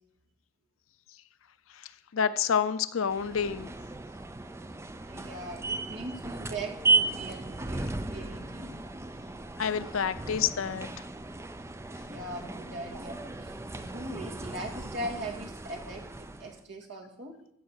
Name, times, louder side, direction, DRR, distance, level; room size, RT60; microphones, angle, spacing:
voice 1, 2.1-3.7 9.6-10.9, left 7 dB, 75° left, 13 dB, 0.5 m, -28 dB
sound 1, 3.1-16.6, right 3 dB, 15° right, 0.4 m, -35 dB
voice 2, 5.1-8.8 12.1-17.4, right 1 dB, 60° right, 0 dB, 2.1 m, -40 dB
15.5 x 5.1 x 6.3 m, 0.84 s
head